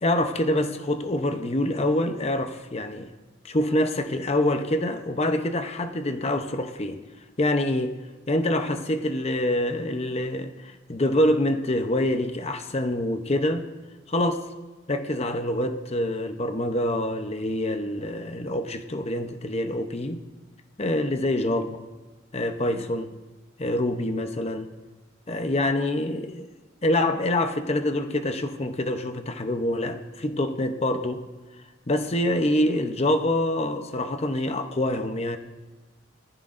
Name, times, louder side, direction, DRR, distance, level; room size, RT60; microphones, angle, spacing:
voice 1, 0.0-3.1 3.4-7.0 7.4-8.0 8.3-13.7 14.1-14.5 14.9-20.2 20.8-21.8 22.3-23.1 23.6-24.7 25.3-26.5 26.8-31.3 31.9-35.4, left 1 dB, 30° left, 0.8 m, -26 dB
20.0 x 14.5 x 2.6 m
head